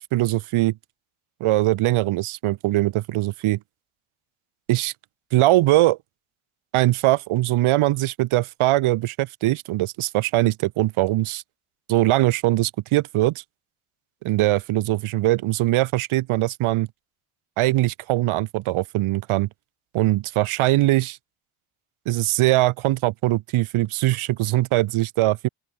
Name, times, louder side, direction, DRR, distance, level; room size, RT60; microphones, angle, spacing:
voice 1, 0.1-0.7 1.4-3.6 4.7-4.9 5.3-6.0 6.7-11.4 11.9-13.4 14.2-16.9 17.6-19.5 19.9-21.2 22.0-25.5, right 17 dB, 75° right, 4.9 m, -21 dB
open air
cardioid pair, 175°, 50 cm